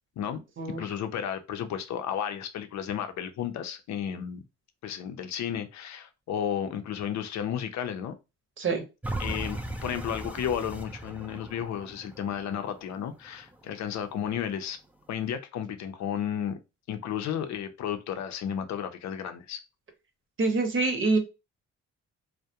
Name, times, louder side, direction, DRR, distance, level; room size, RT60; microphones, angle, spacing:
voice 1, 0.8-4.4 4.8-8.1 9.2-14.8 15.1-16.6 16.9-19.6, left 9 dB, 65° left, 0.5 m, -33 dB
sound 1, 9.0-14.1 14.6-14.7, right 1 dB, 5° right, 0.4 m, -38 dB
voice 2, 20.4-21.2, right 3 dB, 40° right, 0.8 m, -25 dB
2.3 x 2.1 x 2.7 m
cardioid pair, 90°, 30 cm